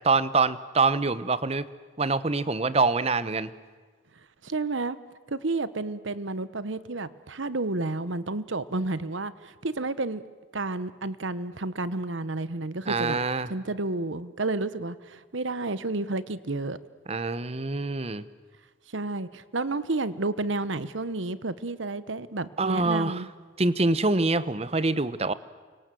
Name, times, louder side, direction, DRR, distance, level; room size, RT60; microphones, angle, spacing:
voice 1, 0.0-1.6 2.0-3.5 12.9-13.5 17.1-18.2 22.6-23.2 23.6-25.3, right 3 dB, 30° right, 15 dB, 0.9 m, -25 dB
voice 2, 4.4-5.0 5.3-10.2 10.5-13.2 13.5-16.8 18.9-23.3, right 2 dB, 75° right, 15 dB, 1.1 m, -31 dB
29.5 x 25.0 x 7.7 m, 1.4 s
head